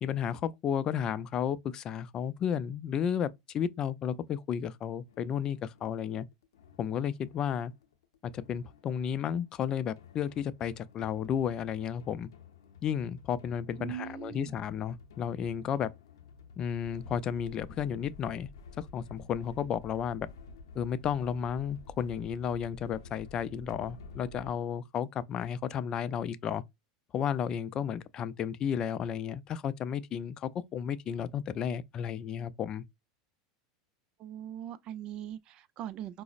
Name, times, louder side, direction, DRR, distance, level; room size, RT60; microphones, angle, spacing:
voice 1, 0.0-6.3 6.8-7.7 8.3-12.3 12.8-15.9 16.6-18.5 18.8-20.3 20.7-26.6 27.1-32.8, left 8 dB, 35° left, 0.3 m, -33 dB
sound 1, 5.1-24.5, left 4 dB, 90° left, 0.6 m, -52 dB
voice 2, 13.8-14.6 34.2-36.2, right 11 dB, 45° right, 0.4 m, -41 dB
4.9 x 2.0 x 2.4 m
supercardioid pair, 115°, 2 cm